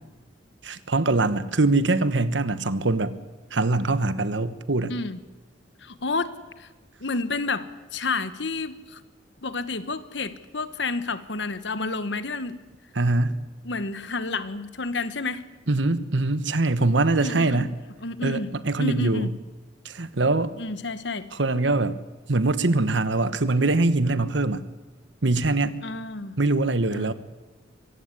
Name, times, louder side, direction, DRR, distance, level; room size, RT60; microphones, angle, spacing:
voice 1, 0.6-3.1 3.5-4.9 12.9-13.4 15.7-17.7 18.2-19.3 19.8-20.5 21.4-22.0 22.3-24.6 25.2-25.8 26.4-27.1, right 2 dB, 75° right, 13 dB, 1.3 m, -23 dB
voice 2, 4.9-5.2 5.8-6.7 7.0-9.0 9.4-12.6 13.6-15.4 17.2-17.7 18.0-18.5 18.8-19.3 20.6-21.3 25.8-26.4 26.9-27.1, left 3 dB, 70° left, 13 dB, 1.2 m, -30 dB
24.0 x 15.5 x 9.8 m, 1.2 s
head